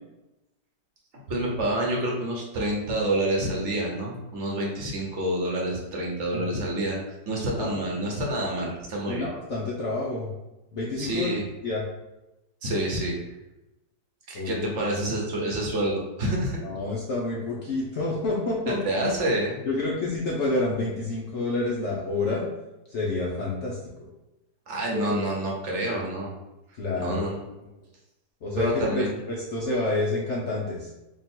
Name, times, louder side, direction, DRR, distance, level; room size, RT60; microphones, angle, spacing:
voice 1, 1.3-7.0 7.3-9.3 11.0-11.4 12.6-13.2 14.3-16.6 18.8-19.6 24.7-26.3 27.0-27.4 28.6-29.2, right 1 dB, 55° right, -2 dB, 0.9 m, -28 dB
voice 2, 9.1-10.3 10.7-11.3 11.6-11.8 14.3-15.0 16.6-19.1 19.6-22.4 22.9-24.1 24.9-25.2 26.8-27.3 27.6-27.7 28.4-30.9, left 2 dB, 65° left, -4 dB, 0.7 m, -29 dB
3.6 x 2.3 x 4.3 m, 0.99 s
omnidirectional pair, 1.9 m